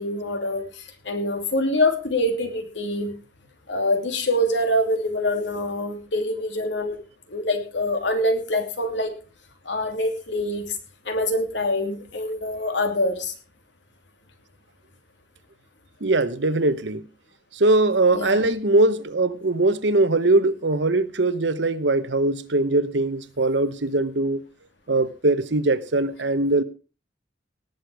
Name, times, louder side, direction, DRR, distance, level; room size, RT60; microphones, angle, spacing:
voice 1, 0.0-3.2 3.7-7.0 7.3-9.2 9.6-10.7 11.0-13.3 18.1-18.4, left 1 dB, 75° left, 2.8 m, -25 dB
voice 2, 16.0-17.0 17.5-24.4 24.9-26.6, right 2 dB, 70° right, 1.0 m, -21 dB
18.5 x 8.0 x 4.8 m
head